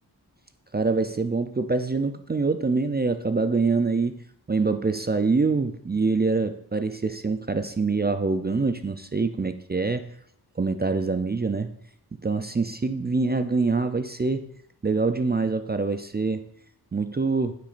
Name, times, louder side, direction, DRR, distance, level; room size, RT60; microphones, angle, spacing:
voice 1, 0.7-4.1 4.5-10.0 10.6-11.7 12.2-14.5 14.8-16.4 16.9-17.6, right 4 dB, 25° right, 9 dB, 0.4 m, -25 dB
9.2 x 7.4 x 2.5 m, 0.69 s
wide cardioid pair, 60°, 42 cm